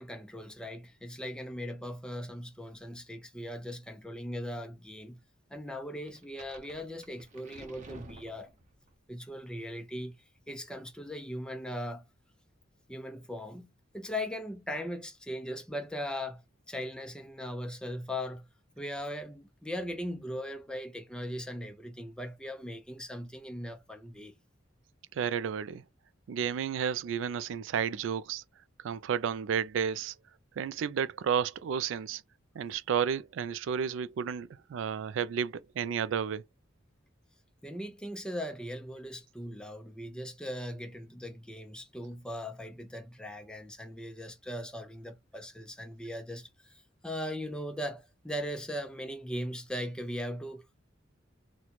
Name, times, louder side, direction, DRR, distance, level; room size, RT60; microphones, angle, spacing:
voice 1, 0.0-5.2 5.5-8.5 9.1-12.0 12.9-18.5 18.8-24.4 37.6-46.7 47.0-50.7, equal, 5° left, 0.5 m, -39 dB
sound 1, 6.1-8.9, right 2 dB, 40° right, 0.7 m, -51 dB
voice 2, 25.1-25.8 26.3-28.4 28.8-30.1 30.6-32.2 32.6-36.4, right 7 dB, 70° right, 0.3 m, -32 dB
3.0 x 2.2 x 3.9 m
head